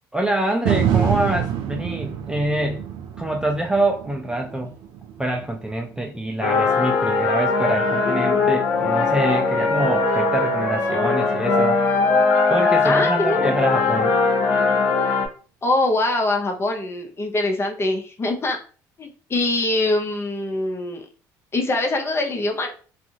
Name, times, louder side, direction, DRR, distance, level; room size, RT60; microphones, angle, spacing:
voice 1, 0.1-2.8 3.2-4.7 5.2-11.8 12.5-14.1, right 1 dB, 10° right, 2 dB, 0.4 m, -25 dB
sound 1, 0.6-8.8 9.3-9.4, right 9 dB, 70° right, 0.5 m, -28 dB
sound 2, 6.4-15.3, left 4 dB, 75° left, 0.7 m, -20 dB
voice 2, 12.8-13.5 15.6-18.6 19.0-21.0 21.5-22.7, left 2 dB, 30° left, 3 dB, 0.7 m, -23 dB
2.6 x 2.4 x 2.8 m, 0.39 s
supercardioid pair, 85°, 9 cm